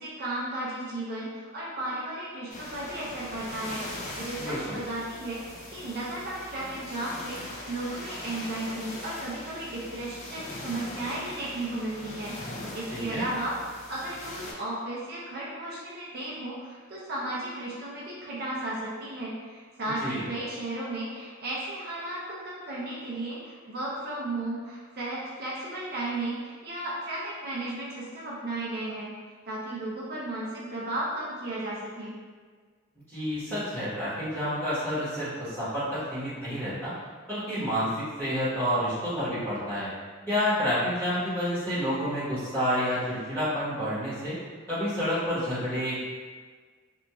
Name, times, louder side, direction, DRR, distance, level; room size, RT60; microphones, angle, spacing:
voice 1, 0.0-12.3 12.7-29.1 29.5-32.2, right 1 dB, 50° right, -6 dB, 0.5 m, -34 dB
sound 1, 2.5-14.5, left 1 dB, 35° left, 0.4 m, -41 dB
voice 2, 4.4-4.8 12.9-13.2 20.0-20.2 33.1-36.9 37.3-37.9 38.2-39.9 40.3-44.3 44.7-46.0, equal, 10° left, -13 dB, 1.1 m, -29 dB
2.8 x 2.4 x 2.3 m, 1.5 s
head